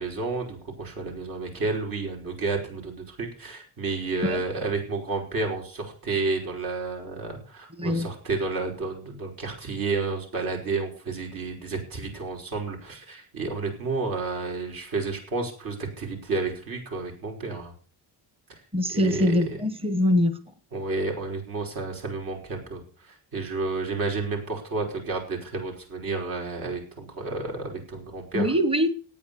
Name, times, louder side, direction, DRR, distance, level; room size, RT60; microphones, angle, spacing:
voice 1, 0.0-17.7 18.9-19.6 20.7-28.5, right 3 dB, 60° right, 1 dB, 5.4 m, -31 dB
voice 2, 7.8-8.1 18.7-20.4 28.3-28.9, left 1 dB, 15° right, 12 dB, 1.2 m, -23 dB
13.5 x 9.4 x 7.0 m, 0.41 s
cardioid pair, 160°, 39 cm